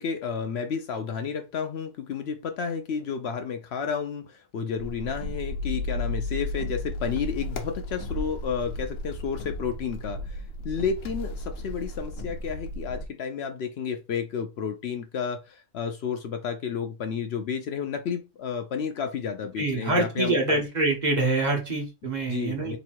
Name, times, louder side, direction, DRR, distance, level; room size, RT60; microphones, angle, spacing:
voice 1, 0.0-20.6 22.3-22.8, left 6 dB, 65° left, 0.8 m, -31 dB
sound 1, 4.8-13.1, left 1 dB, 90° left, 1.1 m, -34 dB
voice 2, 19.6-22.8, right 2 dB, 40° right, 0.9 m, -25 dB
3.0 x 2.7 x 4.4 m
omnidirectional pair, 1.3 m